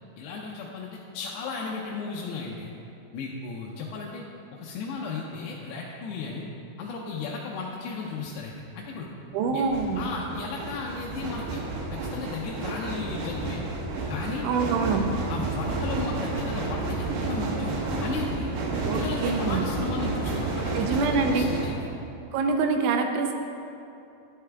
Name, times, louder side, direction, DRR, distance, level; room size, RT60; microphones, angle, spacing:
voice 1, 0.2-2.7 3.1-4.2 4.5-6.5 6.8-9.1 9.5-9.6 10.0-11.6 11.9-13.6 14.1-14.4 15.3-18.5 18.9-21.9, left 4 dB, 80° left, -3 dB, 2.6 m, -35 dB
sound 1, 8.4-8.5 9.5-21.7, right 3 dB, 70° right, 2.6 m, -31 dB
voice 2, 9.3-10.1 14.4-15.1 18.8-19.7 20.7-21.5 22.3-23.3, right 4 dB, 90° right, 4 dB, 3.1 m, -25 dB
10.5 x 10.0 x 3.5 m, 2.7 s
omnidirectional pair, 5.3 m